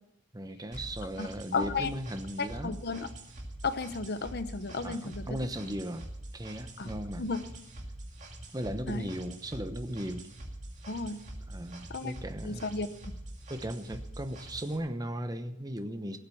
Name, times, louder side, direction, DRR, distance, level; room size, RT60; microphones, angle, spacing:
voice 1, 0.3-2.7 4.8-7.3 8.5-10.2 11.5-12.7 13.5-16.2, right 1 dB, 20° right, 8 dB, 1.0 m, -37 dB
sound 1, 0.7-14.8, right 1 dB, 35° right, 2.3 m, -44 dB
voice 2, 1.2-1.9 2.4-3.1 3.6-5.4 6.8-6.9 7.2-7.5 8.9-9.1 10.9-11.2 11.9-12.1 12.4-13.1, left 4 dB, 50° left, 11 dB, 0.9 m, -34 dB
17.5 x 7.8 x 7.1 m, 0.81 s
head